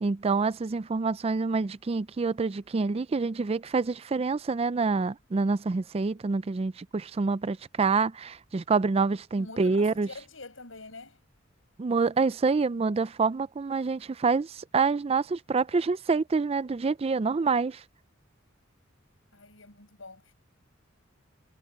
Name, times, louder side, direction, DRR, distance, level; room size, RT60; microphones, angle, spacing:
voice 1, 0.0-10.1 11.8-17.8, right 4 dB, 30° right, 0.4 m, -27 dB
voice 2, 9.4-11.2 19.3-20.3, left 3 dB, 80° left, 7.1 m, -45 dB
head